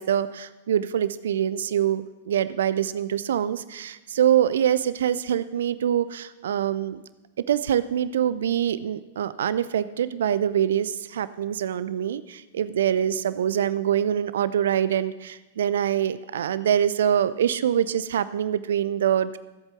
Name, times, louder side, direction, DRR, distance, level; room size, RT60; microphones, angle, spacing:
voice 1, 0.0-7.0 7.5-19.4, right 9 dB, 65° right, 15 dB, 0.5 m, -24 dB
15.0 x 8.1 x 7.0 m, 1.1 s
figure-of-eight pair, 100°, 0 cm